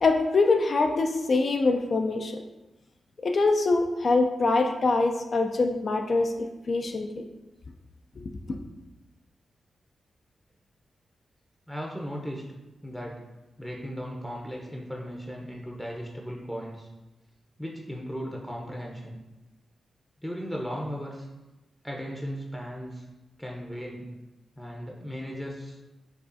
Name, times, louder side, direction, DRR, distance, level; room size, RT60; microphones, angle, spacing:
voice 1, 0.0-2.4 3.2-7.2 8.2-8.6, left 3 dB, 60° left, 4 dB, 0.3 m, -24 dB
voice 2, 11.7-12.4 12.8-13.2 13.6-16.9 17.6-19.2 20.2-21.3 21.8-23.1 23.4-24.1 24.6-25.8, equal, 5° left, -1 dB, 0.6 m, -36 dB
4.7 x 2.4 x 2.5 m, 1.0 s
supercardioid pair, 50°, 0 cm